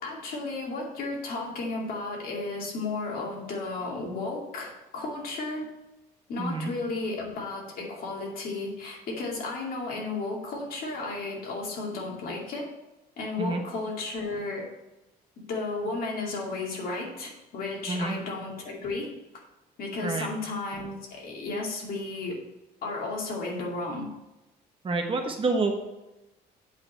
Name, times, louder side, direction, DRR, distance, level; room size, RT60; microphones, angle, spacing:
voice 1, 0.0-5.7 6.3-12.7 13.2-14.7 15.5-19.1 19.8-22.4 22.8-24.1, left 3 dB, 60° left, -2 dB, 2.4 m, -33 dB
voice 2, 6.4-6.7 13.4-13.6 17.9-18.2 20.0-20.3 24.8-25.9, right 3 dB, 30° right, 3 dB, 1.2 m, -28 dB
8.2 x 3.9 x 6.6 m, 0.97 s
cardioid pair, 110°, 17 cm